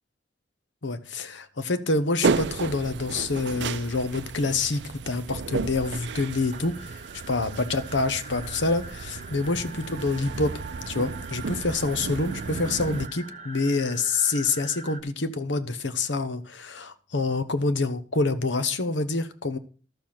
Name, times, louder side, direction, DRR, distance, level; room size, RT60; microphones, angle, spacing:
voice 1, 0.8-7.0 7.3-10.5 10.9-19.6, left 3 dB, 80° left, 11 dB, 1.0 m, -27 dB
sound 1, 2.2-13.1, right 4 dB, 70° right, 0.5 m, -33 dB
sound 2, 5.8-15.0, right 3 dB, 35° right, 0.8 m, -43 dB
12.5 x 6.9 x 5.8 m, 0.37 s
head